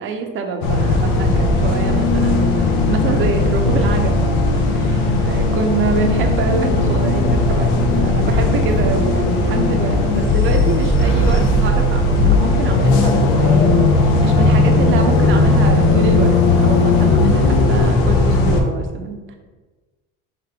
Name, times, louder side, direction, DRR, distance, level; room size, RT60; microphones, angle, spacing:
voice 1, 0.0-13.7 14.0-19.3, right 5 dB, 45° right, 4 dB, 0.6 m, -25 dB
sound 1, 0.6-18.6, left 2 dB, 70° left, 0.7 m, -16 dB
4.1 x 2.9 x 3.5 m, 1.3 s
cardioid pair, 120°, 30 cm